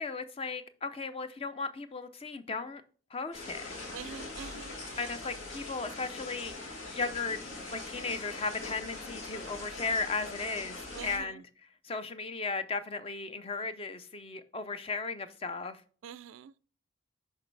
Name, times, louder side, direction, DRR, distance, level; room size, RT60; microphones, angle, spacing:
voice 1, 0.0-2.8 3.1-3.6 5.0-6.5 6.9-7.4 7.7-11.4 11.8-15.8, left 4 dB, 30° left, 0.5 m, -36 dB
sound 1, 3.3-11.2, left 2 dB, 85° left, 2.1 m, -42 dB
voice 2, 3.9-5.1 10.9-11.4 16.0-16.5, right 8 dB, 70° right, 0.3 m, -45 dB
6.4 x 5.3 x 3.2 m
head